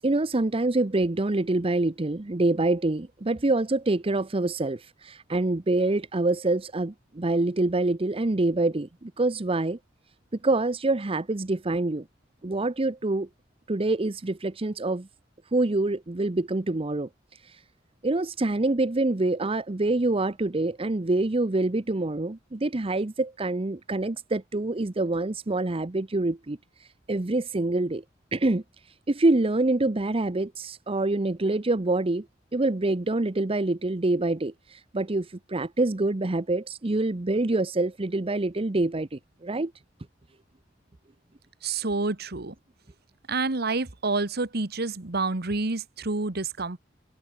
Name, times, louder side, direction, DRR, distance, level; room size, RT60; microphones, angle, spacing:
voice 1, 0.0-9.8 10.4-12.0 12.4-13.3 13.7-15.1 15.5-17.1 17.4-17.6 18.0-28.0 28.3-28.6 29.1-32.3 32.5-39.7, right 2 dB, 30° right, 0.8 m, -26 dB
voice 2, 41.6-42.5 43.3-46.8, right 3 dB, 55° right, 1.5 m, -28 dB
head